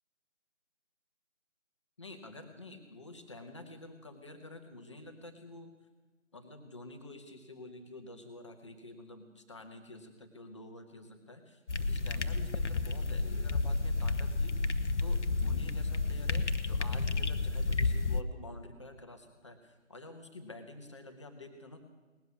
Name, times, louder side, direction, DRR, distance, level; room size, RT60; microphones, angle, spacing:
voice 1, 2.0-5.7 6.3-14.7 15.0-21.8, left 2 dB, 25° left, 5 dB, 1.2 m, -49 dB
sound 1, 11.7-18.2, left 3 dB, 65° left, 1.0 m, -31 dB
19.0 x 7.9 x 9.5 m, 1.3 s
figure-of-eight pair, 160°, 38 cm